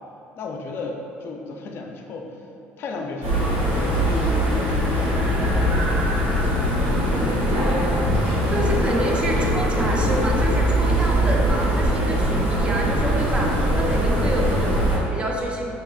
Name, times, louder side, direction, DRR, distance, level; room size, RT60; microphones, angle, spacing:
voice 1, 0.4-2.5 2.8-6.5 6.8-7.8 8.5-10.4, left 3 dB, 55° left, 1 dB, 0.4 m, -34 dB
sound 1, 3.2-15.0, equal, 85° right, 1.4 m, -21 dB
voice 2, 8.5-15.7, right 1 dB, 25° right, -1 dB, 0.6 m, -28 dB
5.8 x 2.8 x 2.4 m, 2.8 s
cardioid pair, 105°, 5 cm